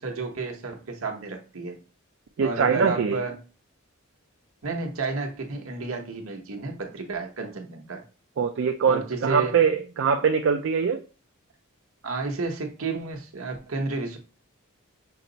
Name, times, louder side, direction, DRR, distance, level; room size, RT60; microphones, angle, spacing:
voice 1, 0.0-1.8 2.4-3.3 4.6-8.0 8.9-9.6 12.0-14.2, right 3 dB, 75° right, 3 dB, 1.0 m, -31 dB
voice 2, 2.4-3.2 8.4-11.0, right 6 dB, 60° right, 5 dB, 0.4 m, -23 dB
5.8 x 2.0 x 3.8 m, 0.33 s
head